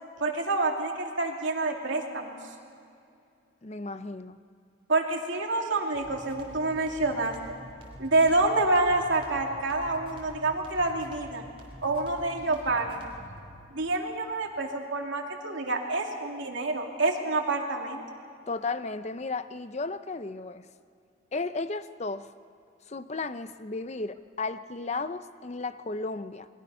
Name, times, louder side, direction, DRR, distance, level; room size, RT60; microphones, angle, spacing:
voice 1, 0.2-2.4 4.9-7.4 8.0-11.4 11.8-13.1 13.7-18.0, right 2 dB, 75° right, 1 dB, 2.7 m, -27 dB
voice 2, 3.6-4.4 18.5-20.7 21.3-22.3 22.9-26.5, left 3 dB, 35° left, 12 dB, 0.6 m, -34 dB
sound 1, 5.9-13.5, equal, 30° right, 3.3 m, -47 dB
29.0 x 22.0 x 5.6 m, 2.5 s
head